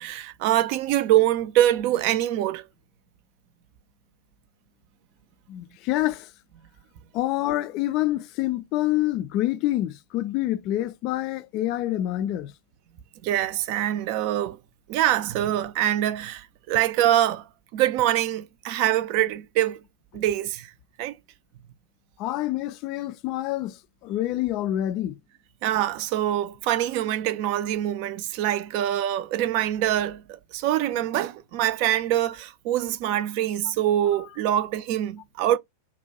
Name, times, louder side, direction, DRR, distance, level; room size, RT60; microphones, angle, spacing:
voice 1, 0.0-2.7 13.2-14.6 14.9-17.4 17.7-19.8 20.1-20.7 21.0-21.2 25.6-30.2 30.5-35.6, right 12 dB, 45° right, 0.4 m, -24 dB
voice 2, 5.5-6.3 7.1-12.5 22.2-25.2, left 14 dB, 40° left, 0.3 m, -27 dB
2.6 x 2.1 x 2.8 m
figure-of-eight pair, 90°, 0 cm